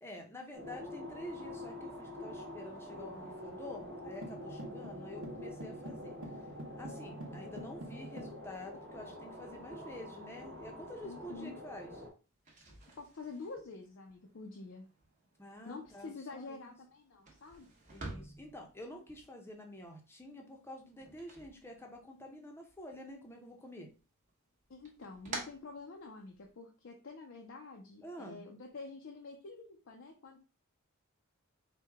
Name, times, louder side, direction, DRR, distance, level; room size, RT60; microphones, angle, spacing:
voice 1, 0.0-6.2 6.8-11.9 15.4-16.8 17.9-23.9 28.0-28.4, left 1 dB, 10° left, 2 dB, 0.7 m, -48 dB
sound 1, 0.5-12.1, left 1 dB, 55° right, 1.1 m, -46 dB
sound 2, 4.2-8.4, right 1 dB, 80° right, 0.9 m, -47 dB
voice 2, 11.0-11.6 12.6-14.9 15.7-17.7 24.7-30.4, left 3 dB, 60° left, 2 dB, 0.5 m, -48 dB
sound 3, 12.3-22.3 22.7-23.5 23.9-26.5, right 2 dB, 35° right, 1.0 m, -50 dB
4.6 x 2.2 x 3.4 m, 0.34 s
head